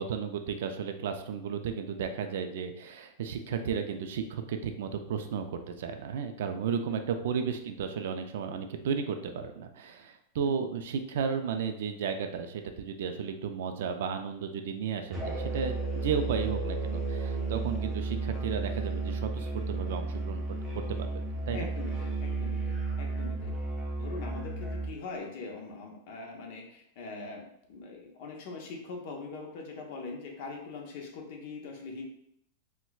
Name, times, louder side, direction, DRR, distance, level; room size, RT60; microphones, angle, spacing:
voice 1, 0.0-20.4 20.7-21.1 21.5-21.7, right 6 dB, 75° right, 7 dB, 0.4 m, -34 dB
Musical instrument, 15.1-25.0, right 3 dB, 10° right, 0.8 m, -33 dB
voice 2, 21.5-23.6 24.0-32.0, left 3 dB, 55° left, 1 dB, 0.8 m, -42 dB
4.3 x 2.2 x 2.3 m, 0.72 s
supercardioid pair, 155°, 0 cm